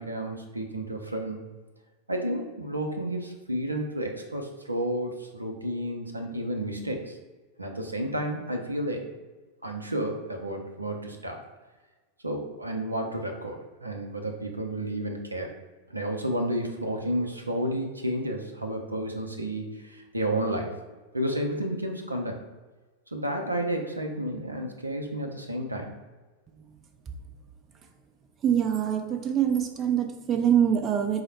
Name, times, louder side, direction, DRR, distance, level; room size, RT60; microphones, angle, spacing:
voice 1, 0.0-1.4 2.1-7.2 7.6-9.0 9.6-11.4 12.2-15.5 15.9-20.7 21.1-22.4 23.1-26.0, right 1 dB, 80° right, 3 dB, 0.5 m, -31 dB
voice 2, 28.4-31.2, right 9 dB, 25° right, 5 dB, 0.4 m, -24 dB
4.6 x 2.0 x 4.3 m, 1.3 s
figure-of-eight pair, 90°, 0 cm